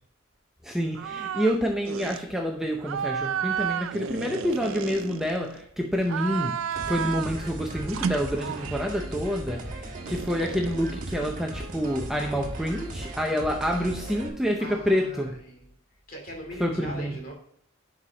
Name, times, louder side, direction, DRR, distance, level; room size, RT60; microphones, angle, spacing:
voice 1, 0.6-6.6 6.9-15.4 16.6-17.1, equal, ahead, 1 dB, 0.6 m, -28 dB
sound 1, 1.0-1.6 1.9-2.2 2.8-5.6 6.0-7.4 7.9-9.0 10.1-11.9, right 8 dB, 70° right, 0.4 m, -32 dB
sound 2, 6.7-14.3, right 1 dB, 40° right, 1.5 m, -37 dB
voice 2, 14.6-15.7 16.1-17.3, equal, 40° left, 0 dB, 2.6 m, -40 dB
11.0 x 4.9 x 2.9 m, 0.70 s
head